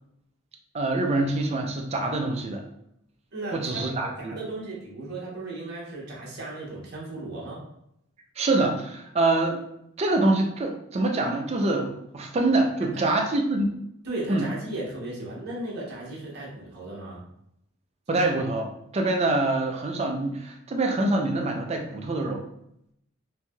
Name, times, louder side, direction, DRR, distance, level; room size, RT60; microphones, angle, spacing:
voice 1, 0.7-2.7 3.5-4.3 8.4-9.6 10.0-13.8 14.3-14.5 18.1-22.4, right 2 dB, 30° right, 3 dB, 0.4 m, -25 dB
voice 2, 3.3-7.6 12.9-13.1 14.0-17.2, right 2 dB, 50° right, -4 dB, 0.8 m, -36 dB
3.1 x 2.6 x 2.2 m, 0.77 s
head